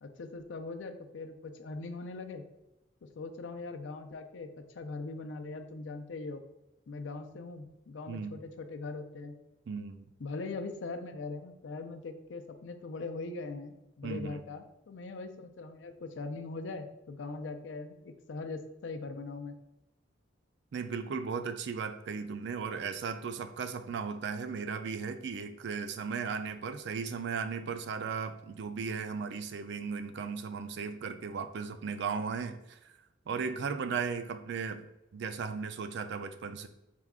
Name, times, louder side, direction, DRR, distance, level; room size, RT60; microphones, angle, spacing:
voice 1, 0.0-2.4 3.2-4.5 4.7-6.4 6.9-9.3 10.2-19.5, left 3 dB, 70° left, 7 dB, 0.4 m, -41 dB
voice 2, 9.7-10.1 14.0-14.4 20.7-32.9 33.3-34.9 35.1-36.7, right 5 dB, 65° right, 9 dB, 0.4 m, -36 dB
4.4 x 2.3 x 3.6 m, 0.90 s
head